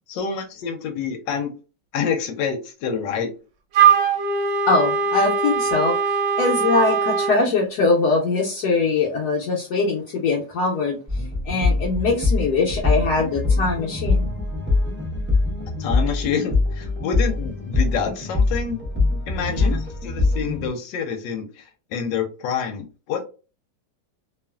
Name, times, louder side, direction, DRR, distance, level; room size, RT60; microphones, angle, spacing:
voice 1, 0.1-1.5 1.9-3.3 15.8-18.8 19.3-23.3, left 6 dB, 90° left, 4 dB, 1.3 m, -27 dB
Wind instrument woodwind instrument, 3.7-7.4, right 6 dB, 90° right, 1.3 m, -20 dB
voice 2, 4.7-6.0 6.4-11.0 11.5-14.3 19.5-19.7, left 3 dB, 70° left, -3 dB, 1.1 m, -22 dB
sound 1, 11.1-20.7, left 3 dB, 15° right, 0.4 m, -23 dB
2.9 x 2.4 x 2.2 m, 0.33 s
omnidirectional pair, 1.9 m